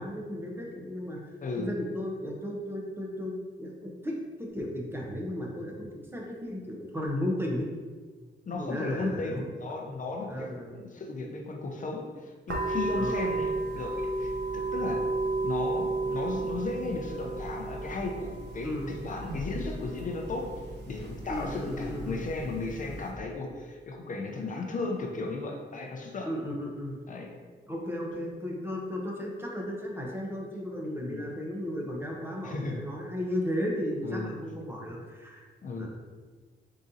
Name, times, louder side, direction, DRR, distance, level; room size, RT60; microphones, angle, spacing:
voice 1, 0.0-1.2 1.6-7.7 8.5-9.5 10.3-10.7 13.0-13.2 18.6-19.0 21.3-22.2 26.2-27.0 27.7-35.4 35.8-35.9, left 1 dB, 10° right, -1 dB, 0.6 m, -34 dB
voice 2, 8.5-15.1 15.4-20.5 20.9-26.3 27.1-27.3 31.0-31.2 32.4-32.8 34.0-34.3 35.6-35.9, left 3 dB, 40° left, 1 dB, 0.5 m, -35 dB
sound 1, 12.5-23.1, right 2 dB, 60° right, 0.7 m, -33 dB
4.0 x 3.7 x 2.6 m, 1.5 s
wide cardioid pair, 135°, 20 cm